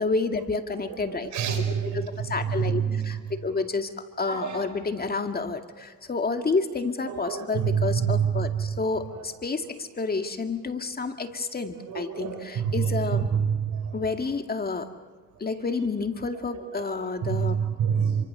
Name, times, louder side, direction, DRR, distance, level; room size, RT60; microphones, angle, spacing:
voice 1, 0.0-1.6 1.9-3.9 4.2-13.3 13.9-14.9 15.4-17.6, left 4 dB, 30° left, 6 dB, 2.1 m, -29 dB
voice 2, 1.1-3.2 4.3-4.6 7.1-8.7 9.6-9.7 11.9-13.9 16.7-16.8 17.2-18.2, right 7 dB, 75° right, 7 dB, 5.5 m, -27 dB
29.5 x 24.0 x 6.8 m, 1.4 s
cardioid pair, 90°, 30 cm